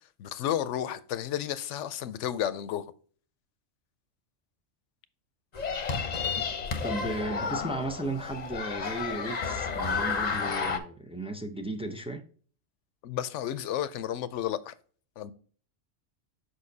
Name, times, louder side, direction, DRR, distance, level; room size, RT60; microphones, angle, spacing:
voice 1, 0.2-2.9 13.0-14.7 15.2-15.3, left 11 dB, 80° left, 0.9 m, -32 dB
sound 1, 5.5-10.8, left 5 dB, 40° left, 0.8 m, -31 dB
voice 2, 6.8-12.2, right 2 dB, 10° right, 0.3 m, -35 dB
6.4 x 5.7 x 2.7 m
omnidirectional pair, 1.2 m